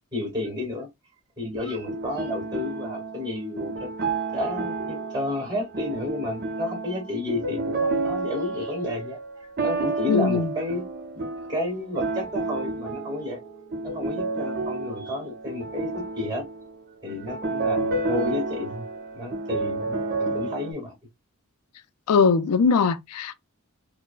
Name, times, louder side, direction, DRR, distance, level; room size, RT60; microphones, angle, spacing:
voice 1, 0.1-0.9 1.4-3.9 4.3-9.2 9.6-10.8 11.1-11.2 11.5-13.4 13.8-16.4 17.0-18.8 19.1-20.9, left 2 dB, 20° right, 1.7 m, -31 dB
sound 1, 1.7-20.7, right 3 dB, 45° right, 0.6 m, -30 dB
voice 2, 10.1-10.5 22.1-23.3, left 5 dB, 85° left, 0.4 m, -20 dB
4.4 x 2.0 x 2.2 m
head